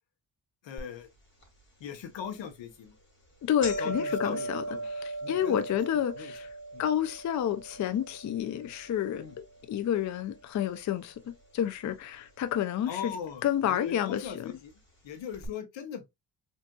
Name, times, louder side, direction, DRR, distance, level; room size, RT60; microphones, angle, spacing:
voice 1, 0.6-1.1 1.8-2.9 3.8-4.9 5.2-5.6 6.1-6.3 6.7-6.8 9.2-9.4 12.9-14.7 15.0-16.1, left 8 dB, 70° left, 0.9 m, -40 dB
sound 1, 0.8-0.9 1.4-1.5 2.3-2.5 2.9-3.0 3.2-11.4 11.7-12.4 13.2-13.3 14.3-14.4 14.7-14.8 15.3-15.5, right 2 dB, 25° left, 1.8 m, -39 dB
voice 2, 3.4-6.5 6.8-13.1 13.4-14.5, left 10 dB, 40° left, 0.4 m, -30 dB
3.6 x 2.6 x 2.3 m
cardioid pair, 65°, 46 cm